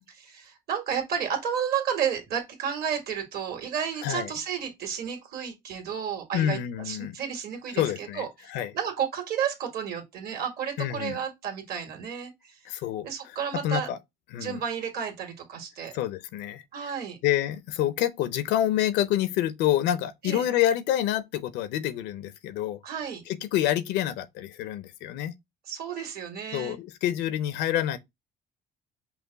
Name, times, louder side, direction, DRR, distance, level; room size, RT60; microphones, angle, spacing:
voice 1, 0.1-6.6 6.8-12.6 13.0-13.9 14.4-15.9 16.7-17.2 20.2-20.4 22.8-23.2 25.7-26.8, right 8 dB, 65° right, 1.7 m, -32 dB
voice 2, 6.3-7.2 7.7-8.7 10.8-11.2 12.7-13.4 13.6-14.0 14.3-14.6 15.9-16.6 17.2-22.8 23.3-25.3 26.5-28.0, left 12 dB, 90° left, 0.6 m, -27 dB
5.6 x 2.2 x 3.9 m
cardioid pair, 110°, 17 cm